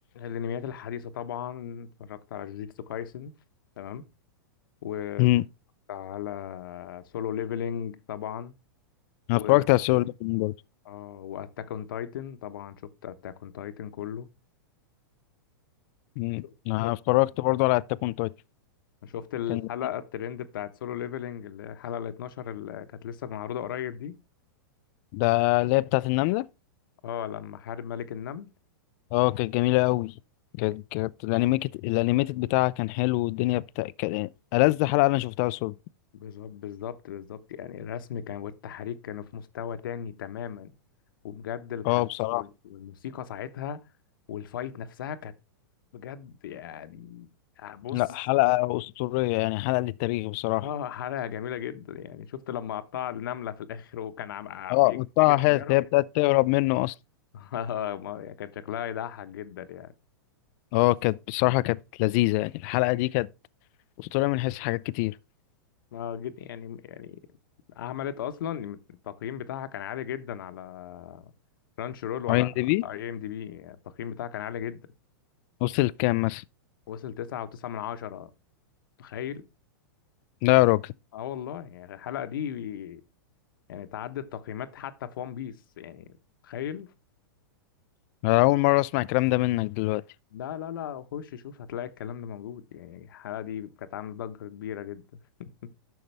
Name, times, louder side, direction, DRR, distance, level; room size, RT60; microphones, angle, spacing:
voice 1, 0.1-3.3 3.8-4.1 4.8-5.3 5.9-8.5 9.3-9.7 10.8-14.3 16.4-16.5 16.8-17.0 19.0-24.2 27.0-28.5 36.1-40.7 41.2-43.8 44.3-45.3 45.9-47.3 47.6-48.0 50.5-55.8 57.3-59.9 65.9-67.2 67.7-71.3 71.8-72.5 72.8-74.8 76.9-78.3 79.0-79.4 81.1-83.0 83.7-86.2 86.4-86.9 90.3-95.0 95.4-95.7, left 9 dB, 70° left, 1.0 m, -36 dB
voice 2, 9.3-10.5 16.2-18.3 19.5-19.6 25.1-26.4 29.1-30.1 30.6-35.7 41.9-42.4 47.9-50.7 54.7-56.9 60.7-63.3 64.0-65.1 72.3-72.8 75.6-76.4 80.4-80.9 88.2-90.0, left 21 dB, 45° left, 0.4 m, -24 dB
10.5 x 6.5 x 3.3 m
hypercardioid pair, 120°, 12 cm